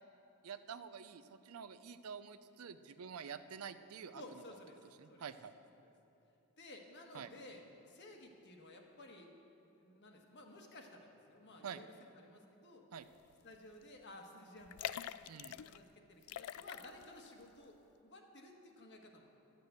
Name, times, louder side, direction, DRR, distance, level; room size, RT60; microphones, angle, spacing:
voice 1, 0.4-4.2 5.0-5.5 7.1-7.3 11.6-11.8 12.9-13.1 15.3-15.6, right 7 dB, 90° right, 12 dB, 0.5 m, -48 dB
voice 2, 4.1-4.8 5.1-5.3 5.8-5.9 6.6-9.3 9.8-12.9 13.4-15.0 15.4-19.3, left 1 dB, 55° left, 2 dB, 1.3 m, -55 dB
sound 1, 13.3-13.5 13.8-13.9 14.6-15.8 16.2-17.3 17.6-17.7, left 11 dB, 85° left, 0.3 m, -44 dB
11.5 x 6.8 x 8.0 m, 2.7 s
head